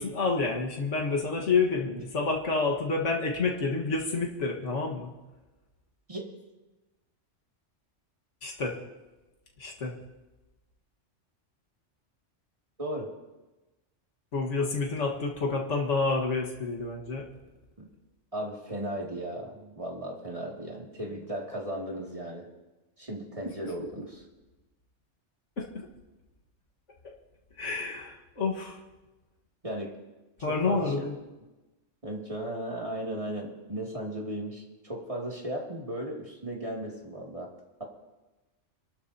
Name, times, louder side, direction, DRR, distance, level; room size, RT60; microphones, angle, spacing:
voice 1, 0.0-5.1 8.4-8.8 9.6-9.9 14.3-17.3 25.6-25.9 27.6-28.8 30.4-31.1, left 4 dB, 75° left, -2 dB, 1.9 m, -29 dB
voice 2, 12.8-13.1 17.8-17.9 18.3-22.5 23.0-24.2 29.6-30.0 30.4-30.9 32.0-37.5, right 1 dB, 30° right, -2 dB, 2.5 m, -36 dB
28.5 x 12.0 x 2.8 m, 1.1 s
omnidirectional pair, 1.2 m